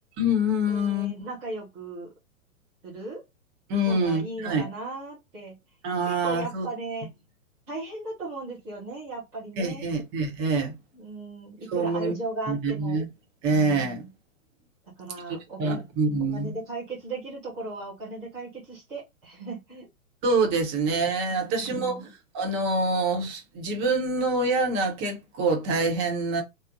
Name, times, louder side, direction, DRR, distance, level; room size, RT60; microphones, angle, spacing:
voice 1, 0.2-1.1 3.7-4.7 5.8-6.7 9.6-10.7 11.7-12.1 12.5-13.1 13.4-14.0 15.6-16.5 20.2-22.0 22.3-26.4, right 2 dB, 30° right, 0.9 m, -25 dB
voice 2, 0.7-2.1 2.8-3.2 3.8-5.5 6.0-7.1 7.7-9.9 10.9-13.0 13.5-14.1 15.0-15.8 16.3-19.9 21.3-22.1, right 3 dB, 5° right, 0.3 m, -37 dB
3.3 x 2.1 x 2.7 m
figure-of-eight pair, 115°, 42 cm